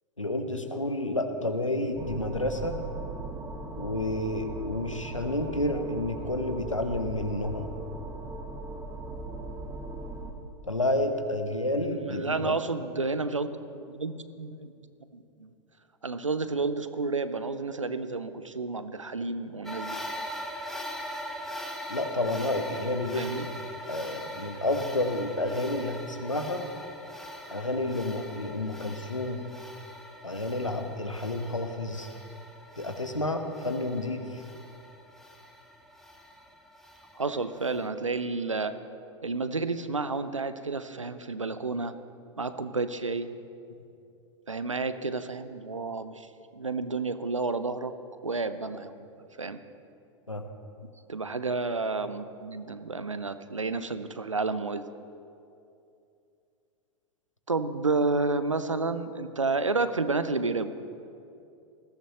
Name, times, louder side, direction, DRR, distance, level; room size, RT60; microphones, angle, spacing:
voice 1, 0.2-2.8 3.8-7.7 10.7-12.6 21.9-23.5 23.9-26.7 27.5-29.4 30.2-32.1 32.8-34.4 50.3-50.4, left 1 dB, 90° left, 7 dB, 1.1 m, -30 dB
sound 1, 2.0-10.3, right 2 dB, 20° right, 1.3 m, -38 dB
voice 2, 11.8-13.5 13.9-14.7 15.1-15.5 16.0-20.0 23.1-23.5 37.1-38.7 39.2-41.9 42.4-43.3 44.5-46.3 46.5-47.9 48.2-48.9 49.4-49.6 51.1-54.9 57.5-60.7, right 3 dB, 85° right, 12 dB, 0.7 m, -30 dB
sound 2, 19.6-37.9, equal, ahead, 1.2 m, -42 dB
19.5 x 15.0 x 3.0 m, 2.6 s
figure-of-eight pair, 95°, 16 cm